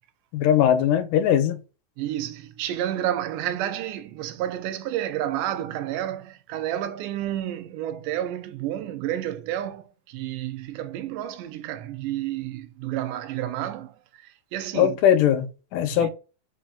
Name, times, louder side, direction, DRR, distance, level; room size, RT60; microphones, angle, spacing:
voice 1, 0.3-1.6 14.7-16.1, left 10 dB, 90° left, 2.2 m, -20 dB
voice 2, 2.0-15.0 15.9-16.1, right 12 dB, 85° right, 2.2 m, -30 dB
5.3 x 2.8 x 3.6 m
omnidirectional pair, 3.7 m